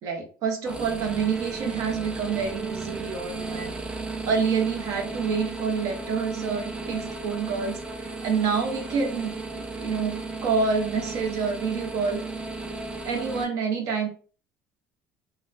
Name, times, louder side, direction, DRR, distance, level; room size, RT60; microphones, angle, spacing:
voice 1, 0.0-3.8 4.2-12.2 13.0-14.1, right 5 dB, 65° right, 3 dB, 0.7 m, -28 dB
sound 1, 0.6-13.4, right 3 dB, 15° right, 0.5 m, -34 dB
4.0 x 2.1 x 2.4 m, 0.39 s
cardioid pair, 115°, 6 cm